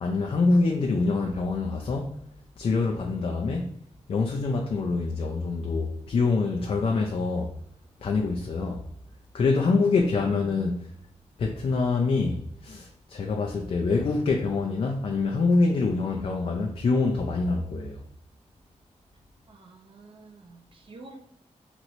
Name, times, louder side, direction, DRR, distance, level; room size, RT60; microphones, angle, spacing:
voice 1, 0.0-2.2 2.6-3.7 4.1-7.5 8.0-8.8 9.3-10.9 11.4-18.0, left 3 dB, 50° left, 0.4 m, -25 dB
voice 2, 19.5-21.2, right 3 dB, 45° right, 0.6 m, -48 dB
3.0 x 2.9 x 2.6 m
wide cardioid pair, 120°, 12 cm